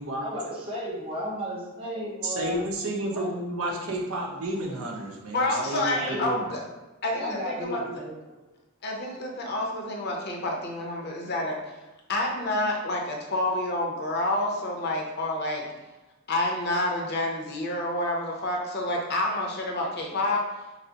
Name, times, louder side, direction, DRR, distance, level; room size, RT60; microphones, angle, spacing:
voice 1, 0.2-2.7 3.1-3.3 5.6-6.6 7.1-8.3, equal, 25° right, -4 dB, 1.0 m, -35 dB
voice 2, 2.2-6.5, right 1 dB, 90° right, -1 dB, 0.8 m, -31 dB
voice 3, 5.3-6.6 7.0-8.0 8.8-11.8 12.1-15.7 16.3-20.4, left 1 dB, 50° left, 0 dB, 0.6 m, -28 dB
5.7 x 2.0 x 2.8 m, 1.1 s
head